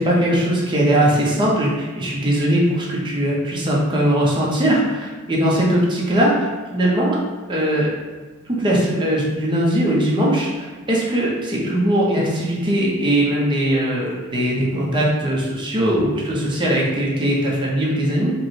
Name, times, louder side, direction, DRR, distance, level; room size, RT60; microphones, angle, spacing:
voice 1, 0.0-7.2 7.5-7.9 8.5-18.3, right 1 dB, 20° right, -4 dB, 0.7 m, -20 dB
5.1 x 2.1 x 3.1 m, 1.4 s
head